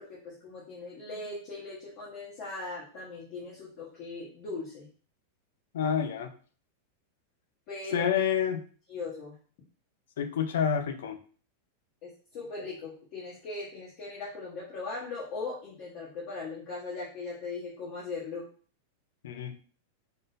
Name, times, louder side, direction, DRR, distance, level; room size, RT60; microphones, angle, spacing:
voice 1, 0.0-4.9 7.7-8.0 8.9-9.3 12.0-18.5, left 3 dB, 35° left, -6 dB, 1.1 m, -39 dB
voice 2, 5.7-6.3 7.9-8.6 10.2-11.2 19.2-19.6, left 8 dB, 85° left, 8 dB, 0.6 m, -28 dB
3.7 x 2.6 x 3.9 m, 0.41 s
supercardioid pair, 180°, 0 cm